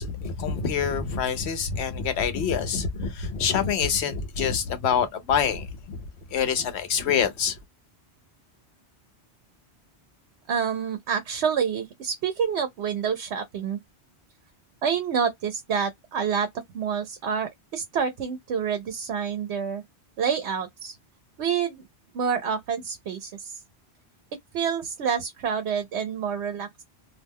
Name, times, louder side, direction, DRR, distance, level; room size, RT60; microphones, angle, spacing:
voice 1, 0.0-6.0 6.3-7.6, left 7 dB, 80° left, 1.0 m, -26 dB
voice 2, 10.5-13.8 14.8-19.8 20.2-21.0 21.4-21.8 22.1-23.6 24.5-26.8, right 7 dB, 85° right, 0.9 m, -28 dB
2.6 x 2.1 x 3.4 m
omnidirectional pair, 1.1 m